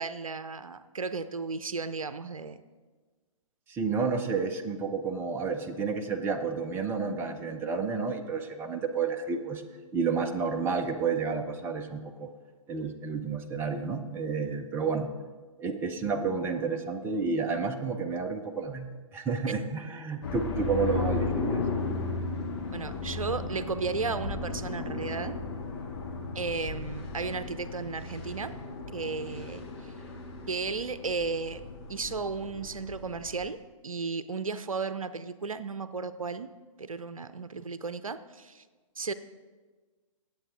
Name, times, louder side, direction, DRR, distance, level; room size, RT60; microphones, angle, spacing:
voice 1, 0.0-2.6 22.7-25.4 26.3-28.5 28.9-29.9 30.5-31.6 31.9-36.5 36.8-38.6 39.0-39.1, right 4 dB, 75° right, 13 dB, 0.6 m, -34 dB
voice 2, 3.7-9.6 9.9-12.3 12.7-15.1 15.6-21.6, right 5 dB, 15° right, 5 dB, 0.6 m, -30 dB
sound 1, 20.2-33.4, left 3 dB, 45° left, 2.2 m, -35 dB
18.0 x 7.8 x 3.8 m, 1.4 s
figure-of-eight pair, 120°, 18 cm